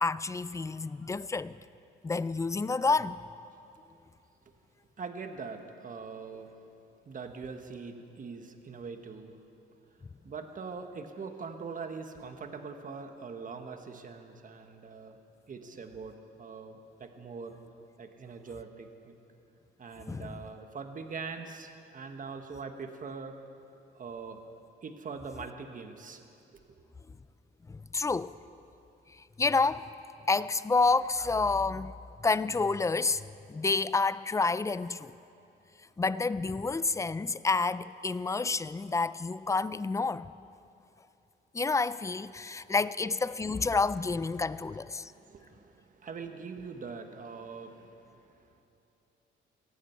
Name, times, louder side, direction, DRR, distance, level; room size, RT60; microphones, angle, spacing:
voice 1, 0.0-1.6 2.0-3.2 20.1-20.4 27.7-28.4 29.4-29.9 30.3-31.9 32.2-33.2 33.5-35.1 36.0-40.3 41.5-45.1, left 4 dB, 15° left, 0.3 m, -29 dB
voice 2, 5.0-6.5 7.0-9.4 10.2-15.2 15.5-17.6 18.0-19.1 19.8-23.4 23.9-24.4 24.8-26.2 42.4-42.7 45.0-48.6, right 5 dB, 40° right, 1.4 m, -42 dB
18.0 x 15.0 x 4.6 m
cardioid pair, 90°, 20 cm